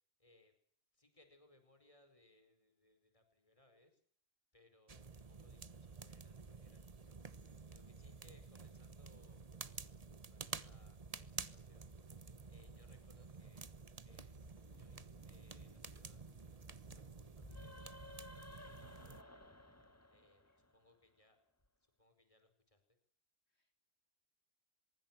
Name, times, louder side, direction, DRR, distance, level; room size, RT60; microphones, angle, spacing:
voice 1, 0.2-0.5 0.9-4.0 4.5-7.2 7.7-10.0 10.3-11.9 12.5-13.7 14.0-14.3 14.7-16.2 16.5-19.5 20.1-21.4 22.0-22.8, left 1 dB, 30° left, 8 dB, 5.1 m, -70 dB
sound 1, 4.9-19.2, right 4 dB, 35° right, 1.2 m, -51 dB
voice 2, 7.8-7.9 20.0-20.1 20.5-20.6 23.5-23.8, left 6 dB, 80° left, 6 dB, 3.6 m, -81 dB
sound 2, 11.5-19.9, right 1 dB, 20° right, 3.6 m, -68 dB
sound 3, 17.3-21.0, left 2 dB, 15° left, 1.4 m, -56 dB
25.0 x 22.0 x 7.5 m, 0.62 s
omnidirectional pair, 1.1 m